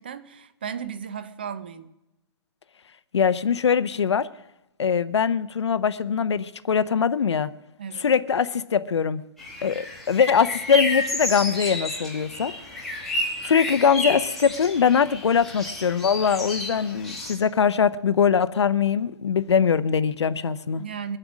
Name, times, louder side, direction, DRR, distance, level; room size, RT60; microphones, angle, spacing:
voice 1, 0.0-1.9 7.8-8.1 20.8-21.2, right 7 dB, 20° right, 0.4 m, -35 dB
voice 2, 3.1-4.3 4.8-7.5 8.0-9.2 9.6-12.8 13.4-20.8, left 7 dB, 75° left, 0.7 m, -22 dB
sound 1, 9.4-17.4, left 1 dB, ahead, 1.0 m, -31 dB
22.5 x 7.8 x 6.1 m
hypercardioid pair, 180°, 14 cm